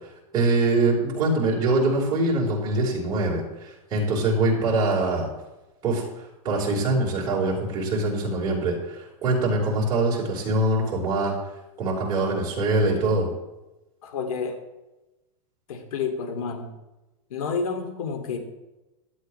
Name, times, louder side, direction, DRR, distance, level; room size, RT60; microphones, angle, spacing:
voice 1, 0.3-5.3 5.8-11.3 11.8-13.3, right 2 dB, 20° right, -5 dB, 4.5 m, -24 dB
voice 2, 14.0-14.6 15.7-16.7 17.3-18.4, left 5 dB, 75° left, 5 dB, 2.6 m, -29 dB
16.5 x 12.0 x 3.3 m, 1.0 s
supercardioid pair, 165°, 19 cm